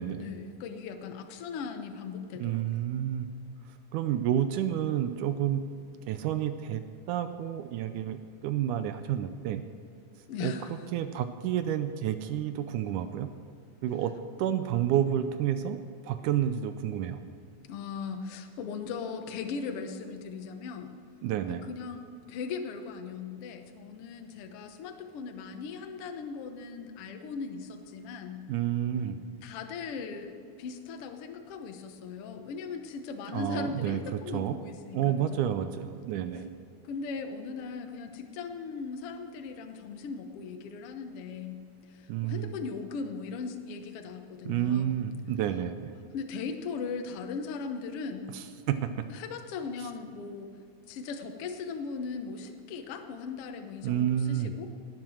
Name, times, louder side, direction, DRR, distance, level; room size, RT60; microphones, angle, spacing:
voice 1, 0.2-2.8 10.3-10.7 17.7-20.9 21.5-28.5 29.4-35.4 36.8-41.6 41.9-45.0 46.1-48.3 49.1-50.5 50.9-54.7, left 5 dB, 65° left, 6 dB, 1.6 m, -38 dB
voice 2, 2.4-3.3 3.9-5.6 6.1-6.8 7.1-9.6 10.4-10.5 10.9-13.3 13.8-14.1 14.4-17.2 21.2-21.7 28.5-29.2 33.3-34.6 34.9-36.5 42.1-42.5 44.5-45.9 48.3-48.8 53.8-54.5, right 10 dB, 80° right, 10 dB, 2.0 m, -30 dB
18.5 x 9.0 x 6.3 m, 2.4 s
omnidirectional pair, 3.8 m